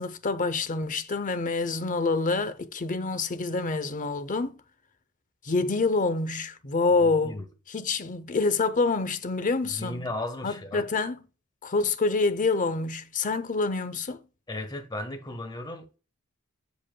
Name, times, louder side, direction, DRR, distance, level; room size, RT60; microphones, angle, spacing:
voice 1, 0.0-4.5 5.4-7.4 7.7-10.1 10.4-11.3 11.6-14.2, left 3 dB, 40° left, 0.7 m, -27 dB
voice 2, 7.0-7.4 9.8-10.8 14.5-16.0, left 1 dB, 20° left, 1.2 m, -35 dB
7.7 x 6.9 x 2.2 m
head